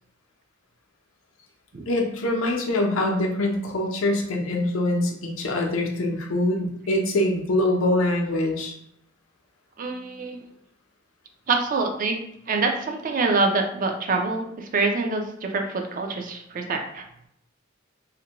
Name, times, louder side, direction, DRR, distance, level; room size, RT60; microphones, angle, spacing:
voice 1, 1.9-8.7, left 1 dB, 90° left, 1 dB, 0.5 m, -24 dB
voice 2, 9.8-10.4 11.5-17.0, right 3 dB, 40° right, 3 dB, 0.4 m, -25 dB
2.5 x 2.1 x 2.9 m, 0.76 s
head